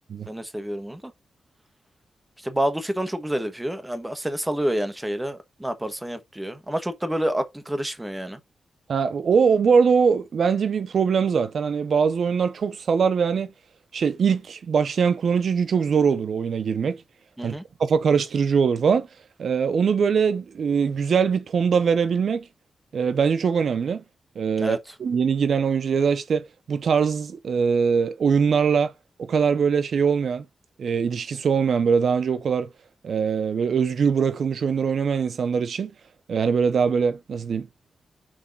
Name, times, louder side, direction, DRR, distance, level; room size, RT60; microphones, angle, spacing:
voice 1, 0.3-1.0 2.4-8.4 17.4-17.6 24.6-24.8, right 1 dB, 5° right, 1.1 m, -28 dB
voice 2, 8.9-13.5 13.9-17.0 17.4-17.5 17.8-19.1 19.4-22.4 22.9-24.0 24.4-28.9 29.2-30.4 30.8-32.7 33.0-35.9 36.3-37.7, right 6 dB, 60° right, 0.6 m, -22 dB
6.3 x 4.1 x 5.2 m
wide cardioid pair, 150°, 0 cm